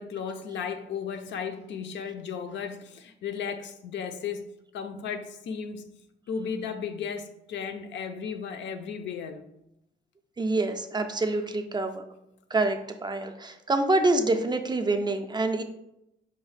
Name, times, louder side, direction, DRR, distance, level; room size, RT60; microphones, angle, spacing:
voice 1, 0.0-4.4 4.7-5.9 6.3-9.5, left 6 dB, 65° left, 0.5 m, -35 dB
voice 2, 10.4-12.0 12.5-15.6, right 2 dB, 20° right, 0.4 m, -26 dB
4.7 x 2.4 x 3.2 m
cardioid pair, 90°, 20 cm